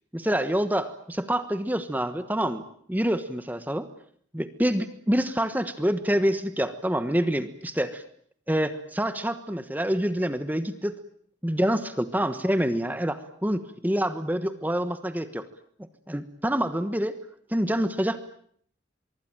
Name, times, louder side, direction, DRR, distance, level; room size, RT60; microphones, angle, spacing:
voice 1, 0.1-2.6 2.9-3.9 4.3-8.0 8.5-11.0 11.4-15.4 16.1-17.2 17.5-18.2, equal, 10° right, 10 dB, 1.2 m, -26 dB
24.5 x 23.5 x 9.0 m, 0.63 s
head